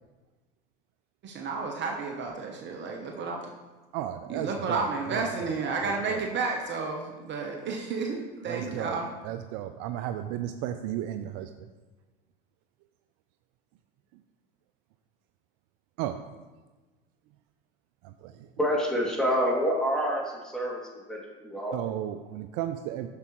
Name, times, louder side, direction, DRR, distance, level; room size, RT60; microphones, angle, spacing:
voice 1, 1.2-3.4 4.3-9.1, right 4 dB, 40° right, 1 dB, 0.9 m, -31 dB
voice 2, 3.9-6.2 8.5-9.0 9.2-11.5 16.0-16.2 18.0-18.5 21.7-23.1, right 11 dB, 60° right, 9 dB, 0.5 m, -34 dB
voice 3, 18.6-20.2 20.5-20.8 21.1-21.7, equal, ahead, -4 dB, 2.5 m, -27 dB
8.3 x 6.8 x 3.1 m, 1.2 s
hypercardioid pair, 90°, 29 cm